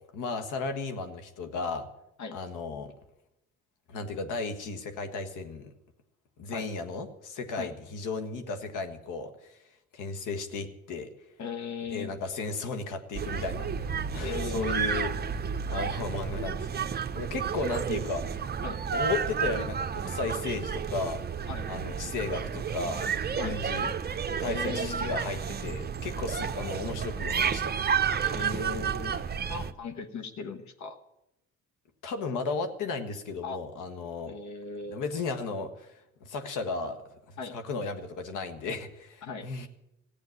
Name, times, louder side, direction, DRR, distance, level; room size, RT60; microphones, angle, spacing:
voice 1, 0.1-1.9 2.3-2.9 3.9-5.7 6.4-9.6 9.9-11.1 11.9-15.1 15.7-16.9 17.1-18.2 18.9-21.2 21.7-23.1 23.4-23.9 24.3-28.6 32.0-34.3 34.9-35.9 36.2-37.0 37.3-39.7, left 4 dB, 90° left, 8 dB, 1.6 m, -35 dB
voice 2, 11.4-12.1 14.2-14.8 18.6-18.8 21.5-21.7 23.4-23.6 24.5-25.2 28.2-29.2 29.5-31.0 33.4-33.6 34.3-35.1 37.4-37.6 39.2-39.5, left 5 dB, 70° left, 8 dB, 1.4 m, -38 dB
sound 1, 13.1-29.7, right 7 dB, 35° right, 0.8 m, -31 dB
15.0 x 8.7 x 9.4 m, 0.87 s
cardioid pair, 90°, 30 cm